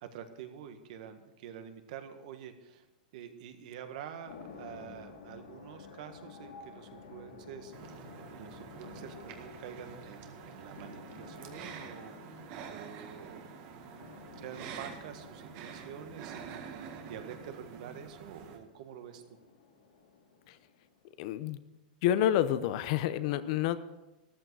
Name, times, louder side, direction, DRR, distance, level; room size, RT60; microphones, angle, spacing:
voice 1, 0.0-2.9 3.1-12.4 12.6-16.8 17.1-19.2, right 8 dB, 55° right, 7 dB, 1.7 m, -47 dB
sound 1, 4.2-21.1, left 5 dB, 75° left, 3.9 m, -52 dB
sound 2, 7.7-18.6, right 7 dB, 40° right, 1.8 m, -47 dB
voice 2, 21.2-21.6 22.0-23.8, left 11 dB, 50° left, 13 dB, 0.8 m, -28 dB
14.0 x 12.5 x 4.8 m, 0.98 s
supercardioid pair, 150°, 5 cm